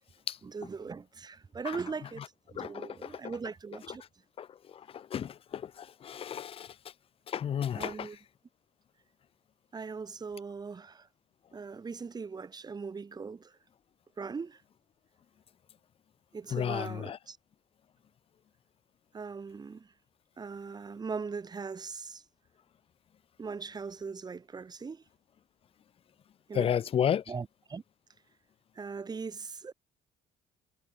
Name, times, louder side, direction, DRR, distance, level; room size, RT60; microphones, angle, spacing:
voice 1, 0.4-2.2 2.5-4.0 7.7-8.2 9.7-11.1 11.5-13.5 14.2-14.6 16.3-17.4 19.1-19.9 20.4-22.2 23.4-25.0 26.5-26.8 27.3-27.8 28.7-29.7, right 5 dB, 25° right, 1.0 m, -40 dB
voice 2, 2.6-3.1 4.4-4.5 4.9-6.7 7.3-8.1 16.5-17.2 26.5-27.2, left 9 dB, 35° left, 0.4 m, -32 dB
cardioid pair, 110°, 17 cm